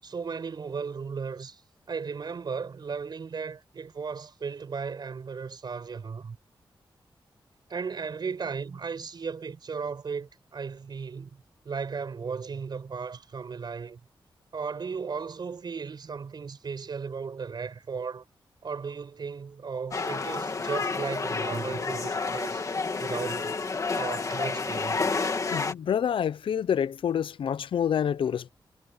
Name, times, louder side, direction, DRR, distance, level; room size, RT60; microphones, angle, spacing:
voice 1, 0.0-1.6 1.9-6.4 7.7-11.4 11.6-14.0 14.5-18.2 18.6-22.7 23.0-23.6 23.9-25.0, right 5 dB, 55° right, 7.6 m, -35 dB
sound 1, 19.9-25.7, left 4 dB, 40° left, 2.5 m, -30 dB
voice 2, 25.5-28.5, left 8 dB, 90° left, 0.5 m, -27 dB
wide cardioid pair, 150°, 9 cm